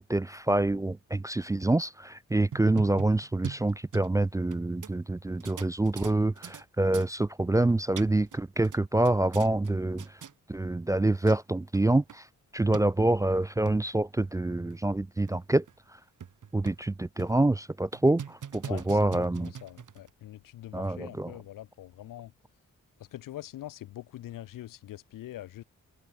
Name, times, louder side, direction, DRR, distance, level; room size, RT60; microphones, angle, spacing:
voice 1, 0.0-10.2 10.5-12.3 12.5-15.7 16.5-19.5 20.7-21.4, right 2 dB, 10° right, 0.3 m, -26 dB
sound 1, 2.5-4.6 4.8-4.9 5.4-6.6 6.9-7.1 7.7-8.4 8.6-9.7 10.0-10.3 11.0-11.1 11.3-11.4 11.7-11.8 12.1-12.2 12.7-12.8 13.4-13.8 14.3-14.4 14.7-14.8 15.3-15.4 15.7-15.8 16.2-16.9 17.2-17.5 17.9-20.1, right 8 dB, 70° right, 2.6 m, -42 dB
voice 2, 18.7-22.3 23.1-25.6, left 14 dB, 85° left, 0.6 m, -43 dB
cardioid pair, 60°, 32 cm